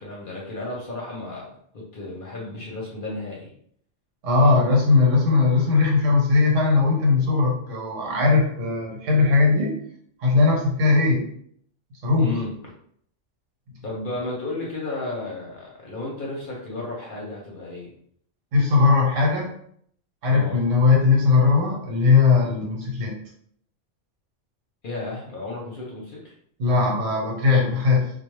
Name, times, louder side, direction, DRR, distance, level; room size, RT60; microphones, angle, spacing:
voice 1, 0.0-3.5 12.2-12.5 13.8-17.9 20.2-20.6 24.8-26.3, left 2 dB, 55° left, -3 dB, 0.7 m, -33 dB
voice 2, 4.2-9.7 10.2-11.2 12.0-12.3 18.5-19.5 20.2-23.1 26.6-28.1, left 4 dB, 80° right, -2 dB, 1.2 m, -19 dB
2.2 x 2.1 x 3.0 m, 0.64 s
omnidirectional pair, 1.3 m